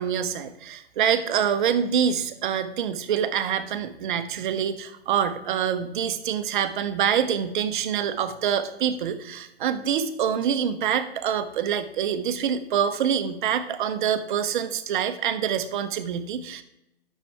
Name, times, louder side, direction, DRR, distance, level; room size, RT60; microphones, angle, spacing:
voice 1, 0.0-16.6, right 8 dB, 50° right, 10 dB, 0.9 m, -26 dB
10.5 x 6.5 x 3.4 m, 0.86 s
hypercardioid pair, 125°, 31 cm